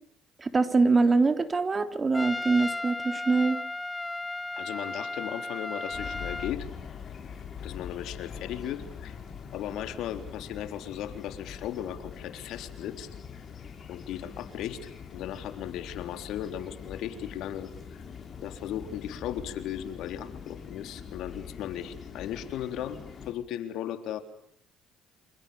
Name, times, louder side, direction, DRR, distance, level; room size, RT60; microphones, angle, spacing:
voice 1, 0.4-3.6, right 3 dB, 25° right, 8 dB, 3.7 m, -24 dB
Trumpet, 2.1-6.6, left 2 dB, 15° left, 1.1 m, -35 dB
voice 2, 4.6-6.7 7.6-9.2 9.5-13.1 13.9-18.0 18.4-23.0 23.3-24.2, left 10 dB, 70° left, 8 dB, 3.7 m, -36 dB
sound 1, 5.9-23.3, left 7 dB, 40° left, 5.9 m, -43 dB
28.5 x 26.5 x 7.2 m, 0.67 s
supercardioid pair, 80°, 0 cm